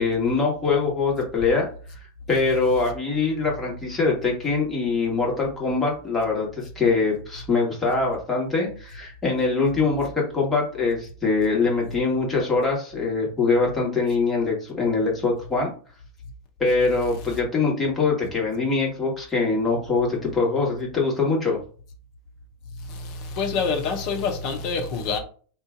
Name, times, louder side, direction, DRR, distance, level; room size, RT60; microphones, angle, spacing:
voice 1, 0.0-1.7 2.3-15.7 16.6-21.6, left 4 dB, 15° left, 1.4 m, -23 dB
voice 2, 22.9-25.2, left 5 dB, 40° left, 0.8 m, -26 dB
2.6 x 2.3 x 3.6 m
figure-of-eight pair, 90°, 0 cm